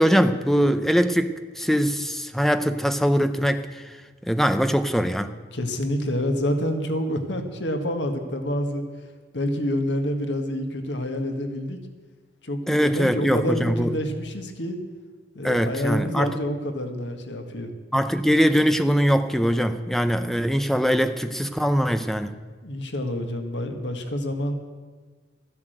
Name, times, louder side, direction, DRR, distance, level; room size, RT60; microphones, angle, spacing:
voice 1, 0.0-3.9 4.3-5.3 12.7-13.9 15.4-16.4 17.9-22.3, equal, ahead, 10 dB, 0.7 m, -22 dB
voice 2, 5.5-8.8 9.3-11.8 12.4-14.8 15.4-17.7 22.6-24.5, equal, 85° left, 6 dB, 1.6 m, -27 dB
13.5 x 11.0 x 7.9 m, 1.4 s
head